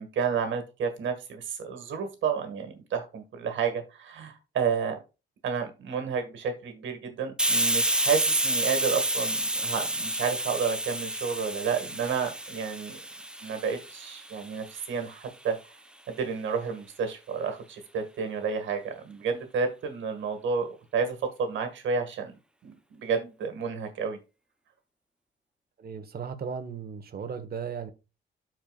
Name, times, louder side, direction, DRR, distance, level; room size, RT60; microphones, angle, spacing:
voice 1, 0.0-5.0 5.4-13.0 13.4-15.6 16.1-22.3 22.6-24.2, right 6 dB, 70° right, 1.9 m, -31 dB
Hiss, 7.4-14.8, right 1 dB, 5° right, 0.7 m, -29 dB
voice 2, 25.8-27.9, right 6 dB, 50° right, 1.4 m, -36 dB
13.0 x 4.6 x 2.4 m
cardioid pair, 90°, 20 cm